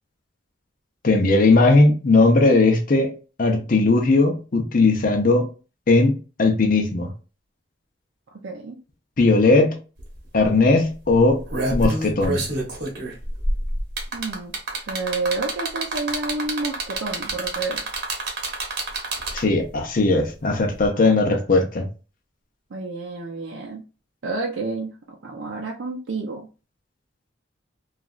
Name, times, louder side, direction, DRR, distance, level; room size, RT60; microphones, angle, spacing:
voice 1, 1.0-5.5 5.9-7.1 9.2-9.8 10.3-11.4 11.7-12.4 19.3-21.9, left 3 dB, 45° left, 3 dB, 0.6 m, -18 dB
voice 2, 8.3-8.8 14.1-17.8 22.7-23.8 24.2-26.5, right 3 dB, 75° right, 0 dB, 0.5 m, -30 dB
sound 1, 10.0-10.1 10.4-10.6 11.2-19.6 20.8-20.9, right 2 dB, 55° right, 1.0 m, -27 dB
2.9 x 2.4 x 2.4 m, 0.33 s
head